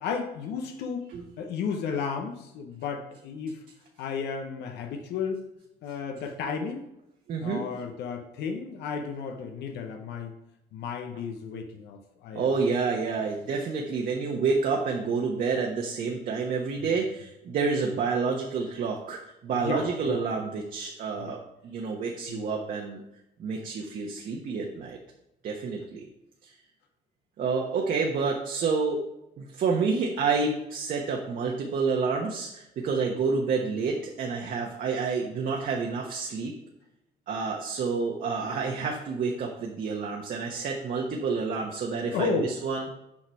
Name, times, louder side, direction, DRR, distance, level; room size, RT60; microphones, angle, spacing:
voice 1, 0.0-1.1 1.4-3.6 4.0-5.5 5.8-6.9 7.4-10.3 10.7-12.5 13.1-13.3 16.8-16.9 19.5-20.2 21.2-21.4 22.3-22.6 42.1-42.5, left 5 dB, 80° left, 4 dB, 1.0 m, -33 dB
voice 2, 7.3-7.6 12.3-23.0 23.4-25.0 25.4-26.1 26.4-26.5 27.4-29.0 29.4-36.5 37.3-42.9, right 4 dB, 55° right, 0 dB, 1.2 m, -29 dB
7.2 x 4.8 x 4.7 m, 0.85 s
cardioid pair, 110°, 17 cm